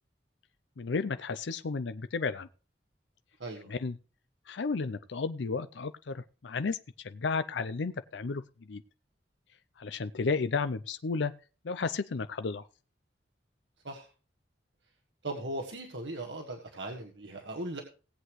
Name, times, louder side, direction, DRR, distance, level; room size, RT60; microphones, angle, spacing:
voice 1, 0.8-2.5 3.7-4.0 4.5-6.8 7.0-8.4 8.7-8.8 9.8-11.3 11.6-12.6, left 4 dB, 85° left, 11 dB, 0.5 m, -32 dB
voice 2, 15.2-17.8, right 2 dB, 90° right, 2 dB, 1.6 m, -38 dB
18.5 x 8.0 x 3.1 m, 0.35 s
head